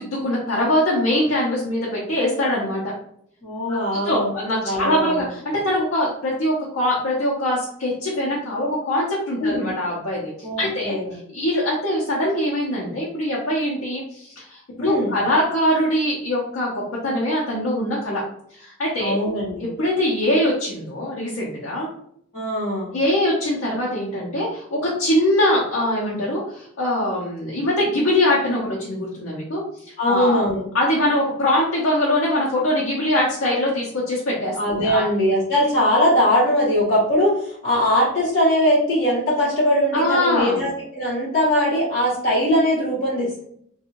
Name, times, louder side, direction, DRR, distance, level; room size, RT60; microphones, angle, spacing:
voice 1, 0.0-2.8 4.0-10.3 10.6-18.2 18.5-19.2 19.6-21.9 22.9-30.4 30.7-35.0 39.9-40.6, left 1 dB, 85° left, -4 dB, 0.7 m, -22 dB
voice 2, 3.4-4.3 4.6-5.3 9.4-9.7 10.4-11.1 14.8-15.1 19.0-19.6 22.3-22.9 30.0-30.7 34.6-43.4, equal, 45° left, -9 dB, 1.3 m, -21 dB
2.6 x 2.3 x 2.8 m, 0.68 s
head